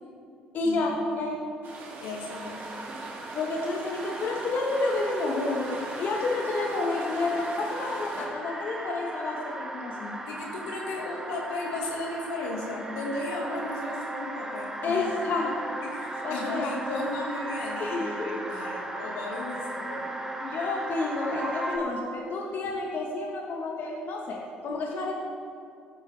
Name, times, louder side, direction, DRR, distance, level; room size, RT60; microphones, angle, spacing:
voice 1, 0.5-1.4 3.3-10.2 14.8-15.7 16.2-16.7 17.8-18.4 20.4-25.1, left 3 dB, 55° left, -1 dB, 1.5 m, -30 dB
sound 1, 1.6-8.3, right 3 dB, 60° right, 2.4 m, -41 dB
voice 2, 2.0-2.7 10.3-15.2 15.8-20.1, left 2 dB, 80° left, -1 dB, 1.9 m, -35 dB
sound 2, 2.3-21.8, right 1 dB, 15° right, 1.7 m, -37 dB
15.5 x 9.1 x 3.4 m, 2.4 s
hypercardioid pair, 55°, 4 cm